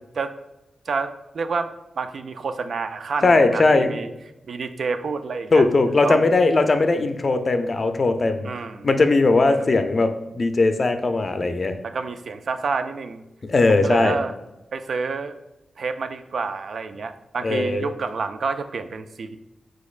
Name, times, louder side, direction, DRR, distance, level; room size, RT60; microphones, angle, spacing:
voice 1, 0.9-4.1 4.5-5.7 6.0-6.2 8.4-8.9 9.5-9.6 11.8-13.2 13.7-14.3 14.7-15.4 15.8-19.4, right 4 dB, 70° right, 9 dB, 0.3 m, -28 dB
voice 2, 3.2-3.9 5.5-8.5 8.8-11.8 13.5-14.2 17.4-17.9, left 3 dB, 45° left, 8 dB, 0.4 m, -19 dB
5.1 x 3.8 x 2.4 m, 0.94 s
cardioid pair, 70°, 0 cm